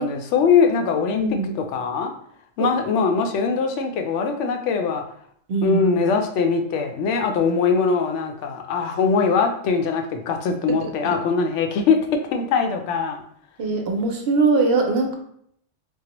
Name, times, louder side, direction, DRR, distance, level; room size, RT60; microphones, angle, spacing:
voice 1, 0.0-1.2 1.6-2.1 2.6-5.0 5.6-12.0 12.3-13.2, left 5 dB, 75° left, 4 dB, 0.9 m, -21 dB
voice 2, 1.1-1.5 2.6-2.7 5.5-5.8 13.6-15.1, right 3 dB, 65° right, 2 dB, 0.7 m, -21 dB
4.5 x 2.0 x 2.9 m, 0.66 s
omnidirectional pair, 1.2 m